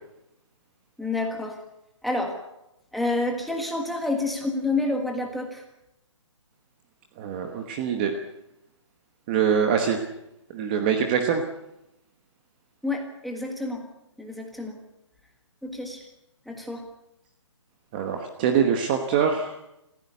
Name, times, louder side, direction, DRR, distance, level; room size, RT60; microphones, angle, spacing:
voice 1, 1.0-1.6 2.0-2.4 2.9-5.6 12.8-13.8 14.2-14.8 15.6-16.0 16.5-16.8, left 2 dB, ahead, 1 dB, 1.6 m, -28 dB
voice 2, 7.2-8.1 9.3-10.0 10.5-11.4 17.9-19.5, right 7 dB, 15° right, 5 dB, 1.2 m, -24 dB
24.5 x 15.5 x 8.2 m, 0.88 s
hypercardioid pair, 175°, 16 cm